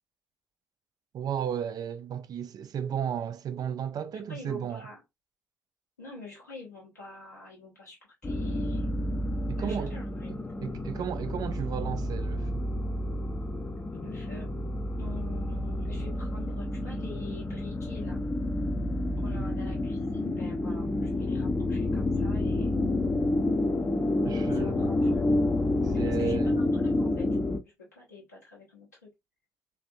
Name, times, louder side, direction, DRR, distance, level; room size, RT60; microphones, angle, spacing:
voice 1, 1.1-4.9 9.5-9.9 10.3-12.6 19.3-19.6 24.2-24.9 25.8-26.6, right 8 dB, 45° right, 0.4 m, -34 dB
voice 2, 4.3-5.0 6.0-8.9 9.5-10.4 13.8-14.5 15.0-18.2 19.2-22.7 24.4-25.3 25.9-27.3 27.6-29.1, left 4 dB, 85° left, 1.0 m, -46 dB
sound 1, 8.2-27.6, left 2 dB, 20° left, 0.5 m, -29 dB
3.3 x 2.5 x 2.6 m
figure-of-eight pair, 40°, 9 cm